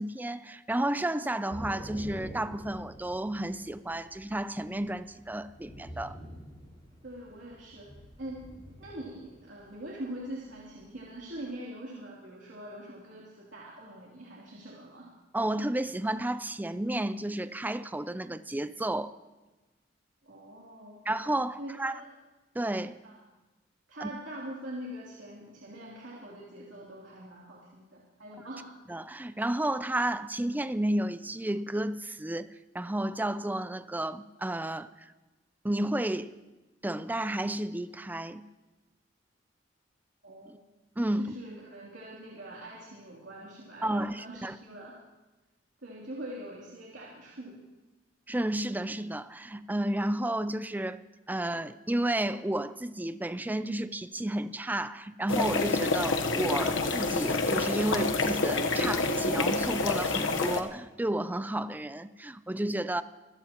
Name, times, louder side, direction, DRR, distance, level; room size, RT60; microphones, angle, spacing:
voice 1, 0.0-6.2 15.3-19.1 21.1-22.0 22.5-23.0 24.0-24.1 28.9-35.1 35.6-36.3 36.8-38.5 40.5-40.6 41.0-41.3 43.8-44.6 48.3-51.0 51.3-63.0, right 1 dB, 10° right, 0.5 m, -32 dB
Thunder / Rain, 1.5-11.5, equal, 25° left, 6.8 m, -47 dB
voice 2, 7.0-7.9 8.2-15.1 20.2-21.0 21.6-22.1 23.0-23.2 23.9-28.7 40.2-40.6 41.2-45.0 45.8-47.6, right 1 dB, 70° right, 3.1 m, -43 dB
sound 1, 55.3-60.6, left 3 dB, 85° left, 1.1 m, -28 dB
26.0 x 16.0 x 3.0 m
head